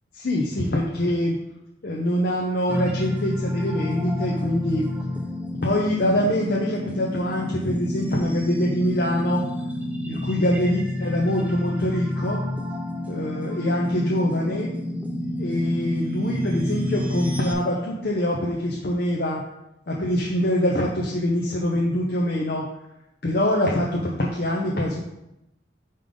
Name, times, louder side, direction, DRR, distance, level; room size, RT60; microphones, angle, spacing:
voice 1, 0.1-1.4 1.8-4.9 5.6-9.5 10.1-12.4 13.1-14.8 15.4-19.4 19.9-22.7 23.2-25.0, left 1 dB, 55° left, -3 dB, 0.7 m, -24 dB
sound 1, 2.7-17.5, left 1 dB, 10° right, 0.5 m, -29 dB
5.3 x 5.1 x 3.8 m, 0.87 s
head